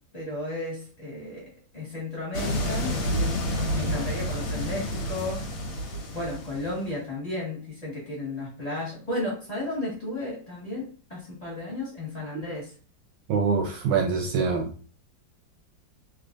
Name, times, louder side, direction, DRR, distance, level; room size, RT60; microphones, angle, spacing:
voice 1, 0.1-1.5 1.7-2.9 3.7-5.4 6.1-12.7, left 2 dB, 20° left, -5 dB, 1.4 m, -33 dB
sound 1, 2.3-6.8, equal, 90° left, 1.7 m, -29 dB
voice 2, 13.3-14.7, right 5 dB, 75° right, 3 dB, 1.1 m, -24 dB
3.4 x 3.0 x 2.5 m, 0.38 s
omnidirectional pair, 2.1 m